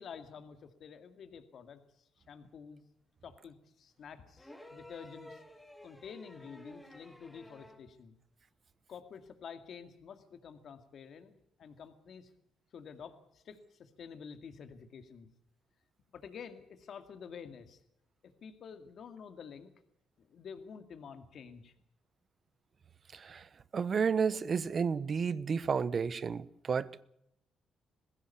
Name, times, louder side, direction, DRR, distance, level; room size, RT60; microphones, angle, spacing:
voice 1, 0.0-2.8 3.2-5.4 5.8-8.1 8.9-11.3 11.6-12.3 12.7-15.3 16.1-17.8 18.2-19.7 20.2-21.7, left 6 dB, 60° left, 2.2 m, -49 dB
sound 1, 4.4-7.9 9.3-9.4, left 1 dB, 5° left, 3.3 m, -53 dB
voice 2, 23.1-23.5 23.7-27.0, right 6 dB, 45° right, 1.0 m, -31 dB
20.5 x 16.0 x 8.5 m
cardioid pair, 90°, 0 cm